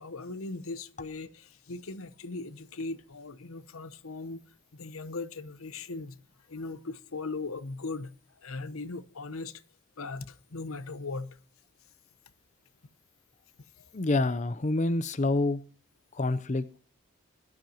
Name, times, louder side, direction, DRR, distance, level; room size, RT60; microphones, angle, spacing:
voice 1, 0.0-4.4 4.7-6.2 6.5-8.1 8.4-9.6 10.0-11.3 13.8-13.9, left 3 dB, 75° left, 0.9 m, -39 dB
voice 2, 13.9-15.6 16.1-16.6, left 2 dB, 35° left, 0.5 m, -27 dB
21.0 x 12.0 x 2.9 m
head